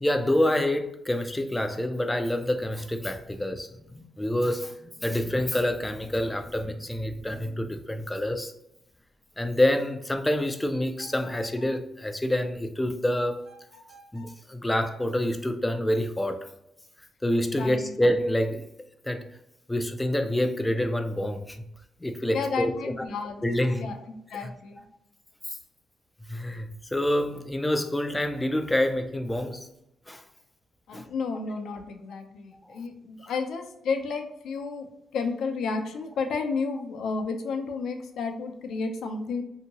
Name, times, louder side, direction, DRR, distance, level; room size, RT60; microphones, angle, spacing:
voice 1, 0.0-8.5 9.4-13.5 14.1-16.5 17.2-18.7 19.0-19.3 19.7-21.6 22.0-22.7 23.4-23.9 24.4-24.5 26.3-29.7 30.1-30.2 30.9-31.1 32.7-32.8, left 1 dB, 10° left, 6 dB, 0.3 m, -27 dB
sound 1, 11.0-11.8 13.4-14.4, right 1 dB, 55° right, 1.1 m, -52 dB
voice 2, 17.5-17.9 22.3-23.4 23.7-24.0 24.3-24.8 30.9-34.9 35.1-39.4, left 4 dB, 70° left, 5 dB, 0.5 m, -32 dB
2.8 x 2.7 x 2.7 m, 0.82 s
cardioid pair, 145°, 0 cm